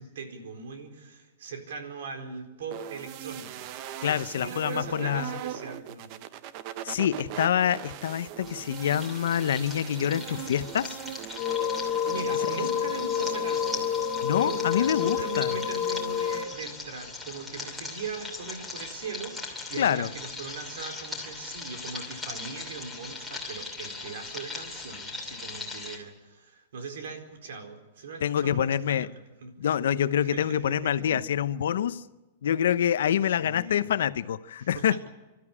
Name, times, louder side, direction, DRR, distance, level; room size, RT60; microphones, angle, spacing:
voice 1, 0.0-3.7 4.1-6.1 9.8-10.4 12.0-13.9 14.3-29.1 29.4-29.5 30.2-31.2 33.3-33.9 34.6-35.1, right 4 dB, 75° right, 4.4 m, -40 dB
sound 1, 2.7-14.0, right 11 dB, 35° right, 0.7 m, -41 dB
voice 2, 4.0-5.4 6.8-11.0 14.2-15.6 19.8-20.1 28.2-29.1 29.6-32.0 32.4-35.1, left 9 dB, 80° left, 0.8 m, -26 dB
sound 2, 8.4-26.0, left 3 dB, ahead, 2.8 m, -40 dB
sound 3, 11.4-16.4, left 8 dB, 30° left, 1.7 m, -29 dB
27.0 x 13.0 x 9.8 m
supercardioid pair, 175°, 0 cm